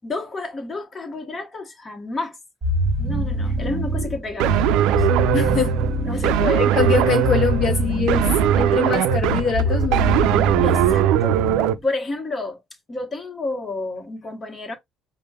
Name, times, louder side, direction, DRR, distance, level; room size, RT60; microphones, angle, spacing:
voice 1, 0.0-2.4 3.0-5.1 6.1-6.7 10.6-12.6 12.9-14.8, left 2 dB, 25° left, 1.1 m, -30 dB
sound 1, 2.6-11.8, right 1 dB, 25° right, 1.4 m, -24 dB
sound 2, 4.4-11.7, right 11 dB, 90° right, 0.3 m, -20 dB
voice 2, 5.3-5.8 6.5-8.3 8.6-10.3, left 6 dB, 55° left, 0.6 m, -23 dB
5.0 x 2.1 x 2.2 m
cardioid pair, 110°, 0 cm